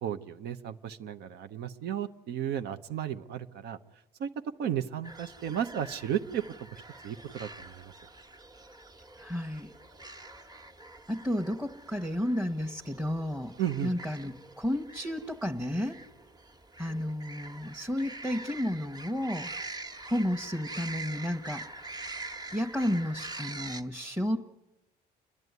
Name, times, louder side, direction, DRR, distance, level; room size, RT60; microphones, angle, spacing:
voice 1, 0.0-3.8 4.2-4.3 4.6-6.4 6.7-7.9 13.6-13.9, right 10 dB, 75° right, 9 dB, 1.0 m, -34 dB
sound 1, 5.0-23.8, right 2 dB, 25° right, 1.5 m, -45 dB
voice 2, 9.2-9.7 11.1-13.5 13.8-16.0 16.8-19.5 20.0-21.6 22.5-24.4, left 1 dB, 5° right, 0 dB, 1.2 m, -32 dB
30.0 x 11.0 x 9.6 m, 0.95 s
cardioid pair, 110°, 17 cm